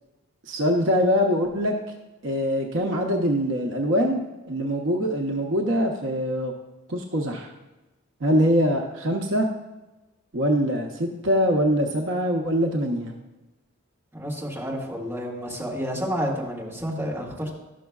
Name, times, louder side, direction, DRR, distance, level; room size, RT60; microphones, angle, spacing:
voice 1, 0.5-1.7 2.2-4.2 4.5-6.5 6.9-7.5 8.2-9.5 10.3-13.1, equal, 60° right, 2 dB, 0.7 m, -23 dB
voice 2, 14.1-17.5, equal, 10° right, -7 dB, 1.7 m, -30 dB
12.0 x 6.2 x 2.3 m, 1.1 s
head